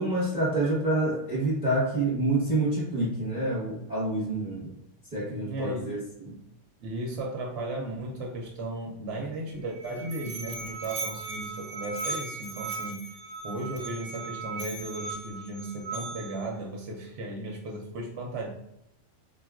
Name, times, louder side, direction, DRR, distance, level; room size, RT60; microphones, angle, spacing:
voice 1, 0.0-4.7 5.1-6.0 6.2-6.4, right 2 dB, 5° right, -5 dB, 0.7 m, -27 dB
voice 2, 5.4-6.0 6.8-13.1 13.4-18.5, right 2 dB, 70° right, -1 dB, 0.8 m, -35 dB
Musical instrument, 9.5-16.5, right 3 dB, 50° right, 0.6 m, -37 dB
3.7 x 2.3 x 2.4 m, 0.80 s
omnidirectional pair, 1.3 m